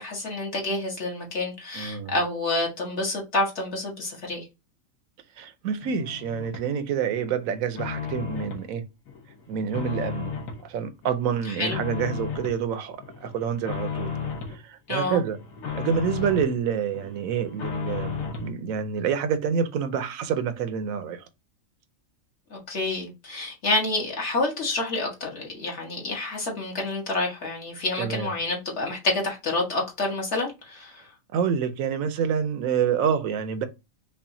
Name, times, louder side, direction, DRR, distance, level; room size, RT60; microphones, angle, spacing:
voice 1, 0.0-4.4 11.5-11.8 14.9-15.2 22.5-31.0, left 2 dB, 55° left, 1.6 m, -28 dB
voice 2, 1.7-2.2 5.4-8.8 9.5-10.3 10.6-14.1 14.5-15.4 15.7-21.3 28.0-28.3 31.3-33.6, right 7 dB, 85° right, 1.0 m, -27 dB
sound 1, 5.8-6.7 7.1-8.7 9.1-10.6 11.0-12.6 13.0-14.6 15.0-16.5 16.9-18.5, left 6 dB, 80° left, 1.3 m, -34 dB
5.4 x 2.4 x 2.6 m
omnidirectional pair, 1.4 m